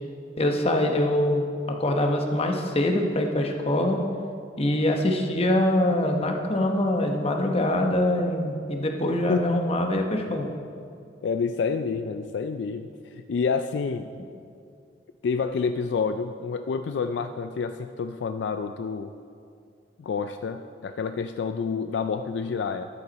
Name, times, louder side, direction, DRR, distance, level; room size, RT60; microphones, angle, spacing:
voice 1, 0.4-4.0 4.6-10.4, left 1 dB, 35° left, 3 dB, 0.9 m, -24 dB
voice 2, 11.2-12.9 13.1-14.1 15.2-19.1 20.0-22.9, left 5 dB, 65° left, 8 dB, 0.3 m, -28 dB
13.0 x 8.0 x 4.1 m, 2.4 s
head